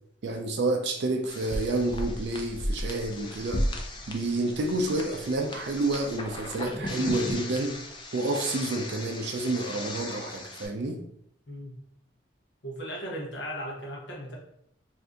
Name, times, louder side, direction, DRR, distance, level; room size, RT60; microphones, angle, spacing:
voice 1, 0.2-3.7 4.1-7.8 8.1-11.0, right 2 dB, 60° right, 0.4 m, -29 dB
sound 1, 1.3-10.7, left 1 dB, 25° left, 0.3 m, -35 dB
voice 2, 11.5-11.8 12.6-14.4, equal, 70° left, 0.9 m, -37 dB
2.6 x 2.5 x 3.4 m
head